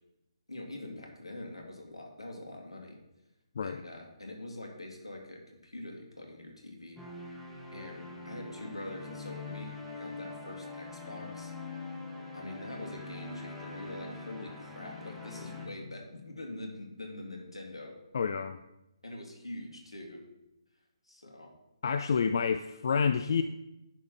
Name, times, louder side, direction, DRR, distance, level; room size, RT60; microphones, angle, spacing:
voice 1, 0.5-3.0 3.6-7.0 7.7-11.5 12.3-17.9 19.0-20.2 21.1-21.5, left 1 dB, 80° left, 1 dB, 2.0 m, -44 dB
sound 1, 7.0-15.7, left 3 dB, 5° right, 1.1 m, -43 dB
voice 2, 18.1-18.6 21.8-23.4, left 6 dB, 45° left, 9 dB, 0.3 m, -28 dB
9.9 x 3.6 x 6.0 m, 0.93 s
figure-of-eight pair, 140°, 3 cm